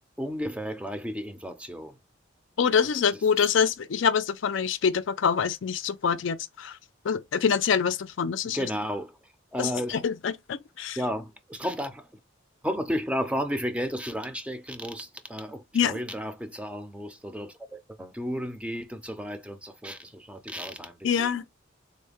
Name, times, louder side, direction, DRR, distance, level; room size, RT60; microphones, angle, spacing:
voice 1, 0.2-2.0 3.1-3.4 8.4-9.2 9.5-10.0 11.0-12.1 12.6-21.3, equal, 5° right, 0.5 m, -33 dB
voice 2, 2.6-6.8 7.0-8.7 9.6-11.0 15.7-16.0 21.0-21.4, left 6 dB, 65° left, 0.4 m, -25 dB
3.8 x 2.1 x 3.3 m
head